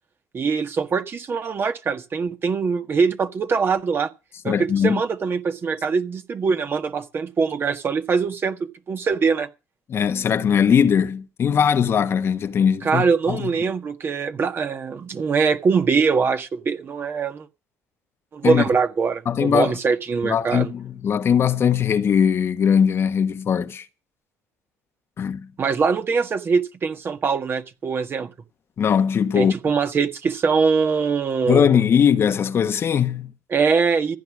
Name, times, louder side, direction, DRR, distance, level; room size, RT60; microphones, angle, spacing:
voice 1, 0.3-4.1 4.4-8.6 8.9-9.5 12.8-17.5 18.3-20.7 25.6-28.3 29.3-31.7 33.5-34.2, right 5 dB, 40° right, 1.5 m, -22 dB
voice 2, 4.5-5.0 9.9-13.4 18.4-18.6 19.3-19.7 20.2-23.9 25.2-25.5 28.8-29.6 31.5-33.3, left 7 dB, 45° left, 1.2 m, -20 dB
15.0 x 9.9 x 6.2 m
supercardioid pair, 80°, 6 cm